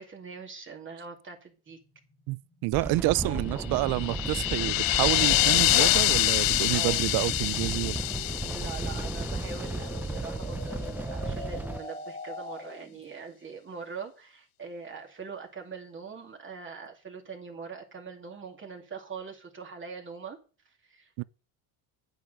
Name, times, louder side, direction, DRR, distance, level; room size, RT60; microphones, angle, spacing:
voice 1, 0.0-1.8 3.0-3.7 6.7-7.0 8.4-20.4 20.7-21.2, right 5 dB, 25° right, 2.5 m, -42 dB
sound 1, 1.7-13.0, left 2 dB, 15° left, 1.7 m, -45 dB
voice 2, 2.3-8.0 21.2-21.3, right 20 dB, 55° right, 0.5 m, -29 dB
sound 2, 2.7-11.8, right 2 dB, 5° right, 0.4 m, -34 dB
sound 3, 3.7-9.9, left 19 dB, 55° left, 0.5 m, -26 dB
9.2 x 4.9 x 7.6 m
supercardioid pair, 100°, 43 cm